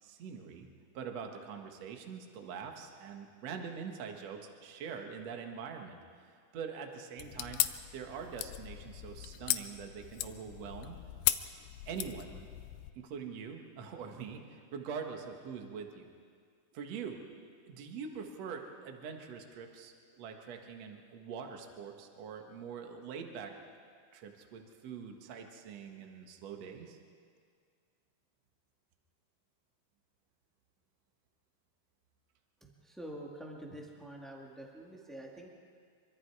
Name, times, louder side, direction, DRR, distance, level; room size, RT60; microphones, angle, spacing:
voice 1, 0.0-0.7 0.9-7.7 7.9-11.0 11.9-12.3 13.0-16.1 16.7-17.2 17.7-23.6 24.1-27.0, right 6 dB, 55° right, 3 dB, 2.2 m, -44 dB
sound 1, 7.2-12.9, left 14 dB, 80° left, 2.3 m, -37 dB
voice 2, 32.6-35.5, right 1 dB, ahead, -1 dB, 0.4 m, -47 dB
25.0 x 24.0 x 4.8 m, 2.1 s
omnidirectional pair, 4.6 m